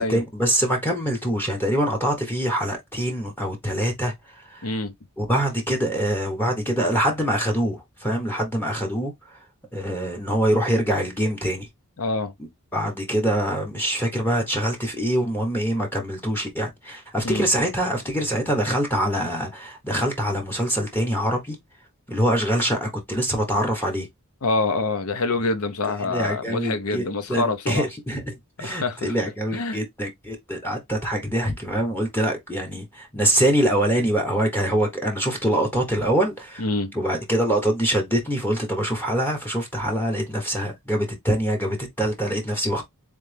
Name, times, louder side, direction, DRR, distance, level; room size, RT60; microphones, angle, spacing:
voice 1, 0.0-4.7 5.2-9.4 9.7-11.7 12.4-21.6 22.1-24.1 26.1-36.6 36.9-42.8, right 1 dB, 10° left, 1.0 m, -24 dB
voice 2, 4.6-4.9 12.0-12.3 17.2-17.5 24.4-27.8 28.6-29.1 29.5-29.8 36.6-36.9, left 3 dB, 75° left, 0.9 m, -26 dB
3.9 x 3.3 x 3.3 m
head